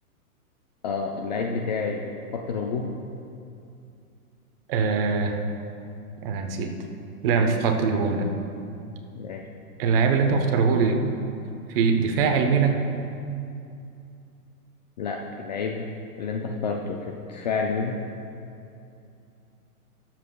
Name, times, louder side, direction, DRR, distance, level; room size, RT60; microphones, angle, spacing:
voice 1, 0.8-2.0 2.3-3.0 9.2-9.5 15.0-15.9 16.2-18.0, left 4 dB, 30° left, 1 dB, 0.4 m, -29 dB
voice 2, 4.7-5.4 6.2-6.7 7.2-8.3 9.8-11.0 11.7-12.8, right 5 dB, 40° right, 5 dB, 1.0 m, -22 dB
20.5 x 7.5 x 2.3 m, 2.6 s
hypercardioid pair, 135°, 46 cm